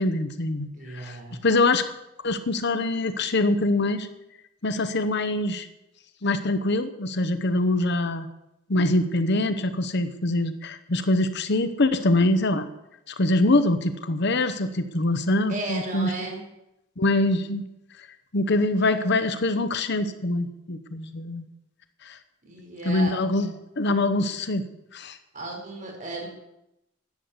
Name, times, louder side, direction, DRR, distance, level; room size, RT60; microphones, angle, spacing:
voice 1, 0.0-0.7 0.9-1.2 1.4-1.9 2.2-4.1 4.6-5.7 6.2-8.3 8.7-12.7 13.1-16.1 17.0-17.6 18.3-21.4 22.0-22.2 22.8-24.6 24.9-25.2, left 2 dB, 60° left, 10 dB, 0.9 m, -24 dB
voice 2, 0.7-1.4 15.5-16.4 22.4-23.1 25.3-26.3, right 2 dB, 40° right, 0 dB, 4.9 m, -34 dB
12.0 x 8.5 x 8.0 m, 0.88 s
head